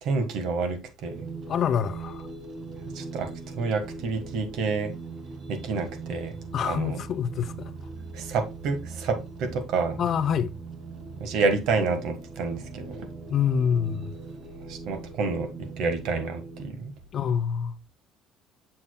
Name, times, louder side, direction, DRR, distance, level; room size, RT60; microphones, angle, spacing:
voice 1, 0.0-1.1 2.9-3.3 3.6-4.9 5.5-6.3 6.7-7.0 8.1-10.0 11.2-13.1 14.7-16.9, right 4 dB, 75° right, 1.5 m, -28 dB
sound 1, 1.1-16.7, right 4 dB, 50° right, 1.6 m, -40 dB
voice 2, 1.5-2.3 6.5-7.7 10.0-10.5 13.3-14.2 17.1-17.9, left 7 dB, 50° left, 0.6 m, -26 dB
7.2 x 6.7 x 2.2 m
cardioid pair, 115°, 0 cm